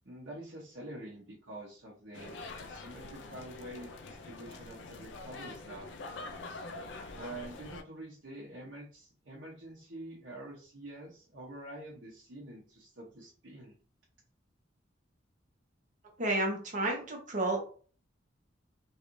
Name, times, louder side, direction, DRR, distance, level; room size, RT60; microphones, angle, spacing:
voice 1, 0.0-5.9 7.1-13.8, right 1 dB, 70° right, -5 dB, 0.9 m, -47 dB
sound 1, 2.1-7.8, left 3 dB, 70° left, 0.4 m, -45 dB
voice 2, 16.2-17.6, right 2 dB, 40° right, 1 dB, 0.9 m, -31 dB
3.2 x 2.6 x 3.0 m, 0.42 s
head